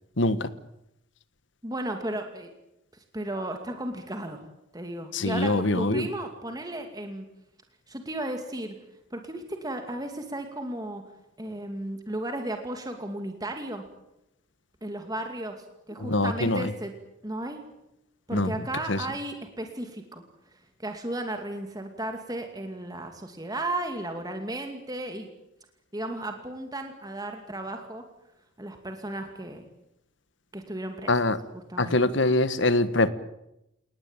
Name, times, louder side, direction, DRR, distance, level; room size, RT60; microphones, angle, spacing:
voice 1, 0.2-0.5 5.1-6.1 16.0-16.7 18.3-18.5 18.9-19.0 31.1-31.4 31.8-33.1, left 2 dB, 60° left, 13 dB, 1.5 m, -24 dB
voice 2, 1.6-2.5 3.1-4.4 4.7-7.3 7.9-8.8 9.1-11.0 11.4-13.8 14.8-16.9 17.2-17.6 18.3-20.2 20.5-25.3 25.9-28.0 28.6-29.7 30.5-31.1 31.7-32.0, right 1 dB, 20° right, 5 dB, 2.4 m, -34 dB
29.0 x 19.0 x 9.0 m, 0.87 s
head